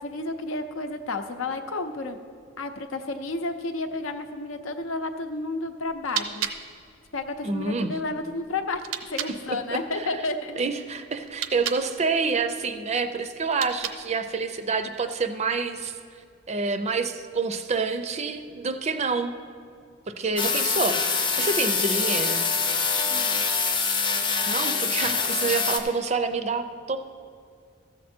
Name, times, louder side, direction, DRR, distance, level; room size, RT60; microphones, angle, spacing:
voice 1, 0.0-2.2 2.6-6.5 7.1-8.8 9.1-10.6 23.1-23.4, left 2 dB, 75° left, 8 dB, 0.7 m, -31 dB
sound 1, 5.8-9.4 11.2-11.9 13.4-14.2, right 9 dB, 75° right, 0.6 m, -35 dB
voice 2, 7.4-7.9 9.5-10.2 10.6-16.0 16.5-19.3 20.2-22.5 24.5-27.0, right 4 dB, 30° right, 9 dB, 0.5 m, -28 dB
sound 2, 20.4-25.8, left 5 dB, 25° left, 0.6 m, -25 dB
13.5 x 7.3 x 4.4 m, 2.3 s
head